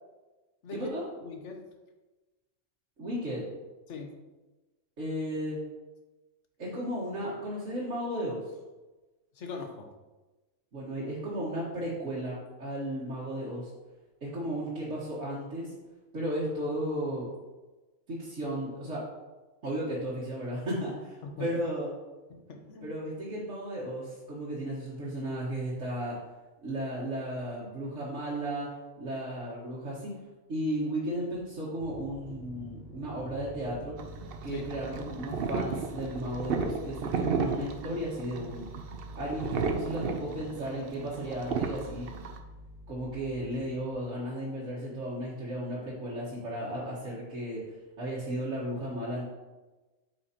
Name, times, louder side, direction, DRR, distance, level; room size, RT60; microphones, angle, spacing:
voice 1, 0.7-1.0 3.0-3.4 5.0-5.6 6.6-8.4 10.7-13.7 14.2-15.7 16.1-17.3 18.1-19.0 19.6-21.9 22.8-26.2 26.6-28.7 29.0-30.1 30.5-34.0 34.4-38.6 39.1-42.1 42.9-49.2, equal, 75° right, -7 dB, 1.8 m, -34 dB
voice 2, 1.2-1.6 3.9-4.1 9.4-9.9 21.2-21.5 22.3-22.9 34.5-34.6, left 4 dB, 70° left, 4 dB, 1.2 m, -41 dB
sound 1, 31.8-43.9, equal, 45° left, 0.8 m, -47 dB
sound 2, 34.0-42.4, right 5 dB, 55° right, 0.8 m, -34 dB
8.8 x 5.6 x 2.9 m, 1.2 s
omnidirectional pair, 1.3 m